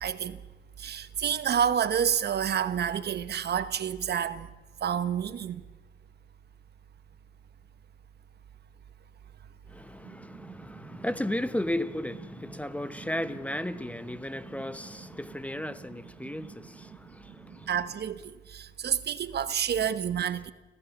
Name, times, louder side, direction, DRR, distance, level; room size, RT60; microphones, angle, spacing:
voice 1, 0.0-0.4 0.8-4.5 4.8-5.6 10.0-10.6 10.8-11.0 14.4-14.6 16.2-16.3 17.4-20.5, right 8 dB, 55° right, 1.1 m, -29 dB
voice 2, 9.7-17.7, left 1 dB, 5° left, 0.9 m, -35 dB
30.0 x 15.0 x 7.2 m
cardioid pair, 90°, 20 cm